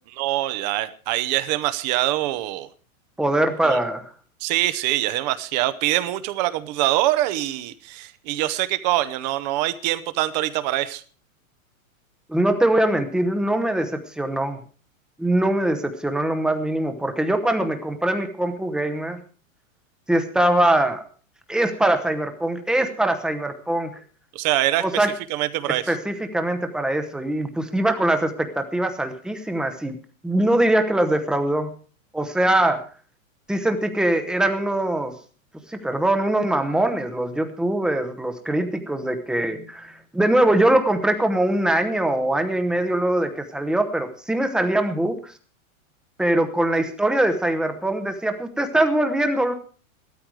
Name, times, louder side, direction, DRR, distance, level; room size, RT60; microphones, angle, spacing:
voice 1, 0.2-2.7 3.6-3.8 4.4-11.0 24.3-25.9, right 15 dB, 30° right, 14 dB, 0.8 m, -24 dB
voice 2, 3.2-4.0 12.3-14.6 15.2-19.2 20.1-21.0 21.5-24.0 24.8-25.1 25.7-30.0 30.2-31.7 32.1-32.8 33.5-35.1 35.7-45.3 46.2-49.5, right 1 dB, ahead, 7 dB, 0.8 m, -22 dB
15.0 x 13.0 x 4.7 m, 0.40 s
supercardioid pair, 165°, 41 cm